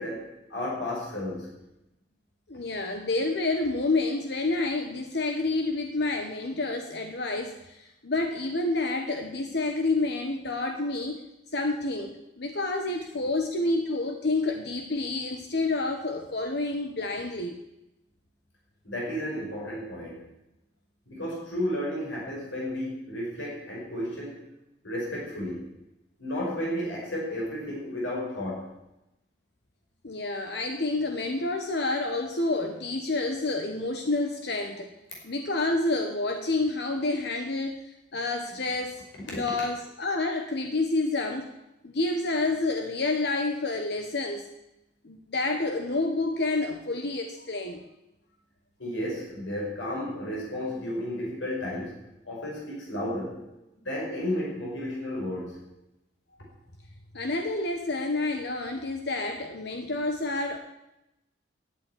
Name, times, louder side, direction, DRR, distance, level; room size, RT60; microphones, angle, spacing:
voice 1, 0.0-1.5 18.8-20.2 21.1-24.4 24.8-25.7 26.2-28.7 39.3-39.4 48.8-52.0 52.2-53.4 53.8-55.6, left 1 dB, 80° left, -3 dB, 5.4 m, -33 dB
voice 2, 2.5-11.2 11.5-17.6 30.0-34.9 35.2-41.5 41.8-44.5 45.0-47.8 57.1-60.6, left 2 dB, 60° left, 5 dB, 1.1 m, -29 dB
11.5 x 8.5 x 9.9 m, 0.91 s
head